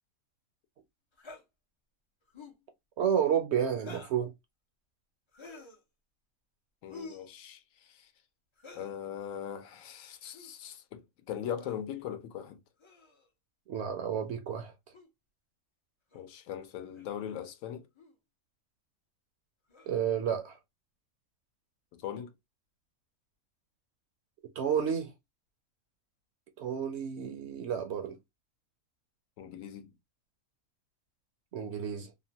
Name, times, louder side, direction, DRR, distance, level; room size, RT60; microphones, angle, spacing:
sound 1, 1.2-1.4 2.3-2.6 3.7-4.2 5.3-5.8 6.9-7.3 8.6-9.0 10.2-10.5 11.6-11.8 12.8-13.3 14.9-15.1 16.1-16.2 16.9-17.2 17.9-18.1 19.7-20.1, left 3 dB, 50° left, 0.3 m, -49 dB
voice 1, 3.0-4.3 13.7-14.7 19.9-20.6 24.6-25.1 26.6-28.2 31.5-32.1, right 8 dB, 65° right, 0.7 m, -31 dB
voice 2, 6.8-8.1 8.7-12.6 16.1-17.9 21.9-22.3 29.4-29.9, left 9 dB, 75° left, 1.0 m, -40 dB
2.9 x 2.1 x 2.7 m
omnidirectional pair, 1.4 m